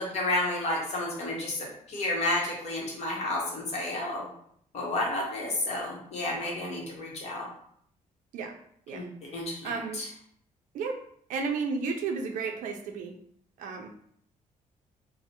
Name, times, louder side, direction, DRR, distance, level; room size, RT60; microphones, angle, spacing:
voice 1, 0.0-4.3 4.7-7.5 8.9-9.1 9.3-10.0, left 2 dB, 55° left, -2 dB, 0.9 m, -31 dB
voice 2, 9.6-10.0 10.7-11.0 11.3-13.1 13.6-13.9, right 4 dB, 70° right, 3 dB, 0.4 m, -32 dB
3.1 x 2.0 x 2.8 m, 0.67 s
cardioid pair, 150°, 14 cm